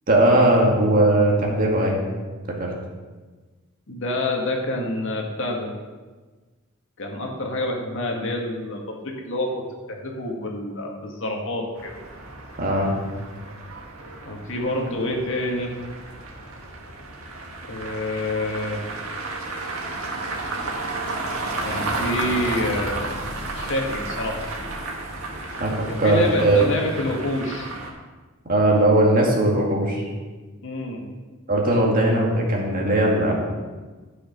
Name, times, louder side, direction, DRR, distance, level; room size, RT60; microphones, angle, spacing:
voice 1, 0.1-2.0 2.5-2.7 12.6-12.9 25.6-26.6 28.5-30.1 31.5-33.4, right 1 dB, 45° right, -1 dB, 2.1 m, -19 dB
voice 2, 3.9-5.7 7.0-12.0 14.2-15.7 17.7-18.8 21.6-23.2 23.5-24.4 25.9-27.7 30.6-31.0, left 1 dB, 65° left, 1 dB, 1.8 m, -27 dB
sound 1, 11.8-27.9, right 2 dB, 85° right, 1.6 m, -32 dB
11.5 x 6.5 x 5.3 m, 1.3 s
head